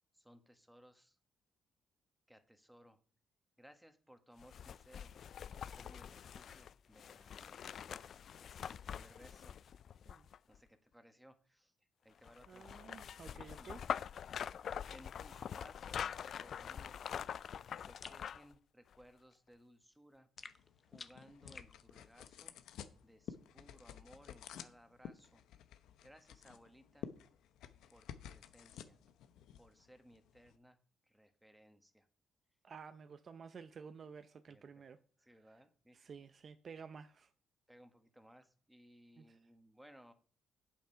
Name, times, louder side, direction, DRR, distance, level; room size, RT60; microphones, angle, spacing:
voice 1, 0.1-1.2 2.3-3.0 3.6-5.1 5.5-7.6 8.4-9.6 10.5-11.7 12.0-12.7 13.4-13.9 14.2-14.5 14.9-17.1 17.8-20.3 20.8-22.6 23.0-25.4 25.7-27.1 27.9-29.0 29.6-30.8 31.0-32.1 34.5-34.9 35.2-36.0 37.7-40.1, equal, 5° right, 1.4 m, -62 dB
sound 1, 4.4-10.6 12.2-18.5 18.9-19.0, left 8 dB, 60° left, 0.3 m, -45 dB
voice 2, 12.5-13.8 32.6-35.0 35.5-35.6 35.9-37.3 39.2-39.4, right 6 dB, 45° right, 0.6 m, -52 dB
sound 2, 18.0-18.2 20.4-21.7, left 4 dB, 35° left, 0.8 m, -52 dB
sound 3, 20.4-30.6, left 9 dB, 85° left, 0.8 m, -53 dB
8.4 x 7.5 x 5.7 m
cardioid pair, 90°, 0 cm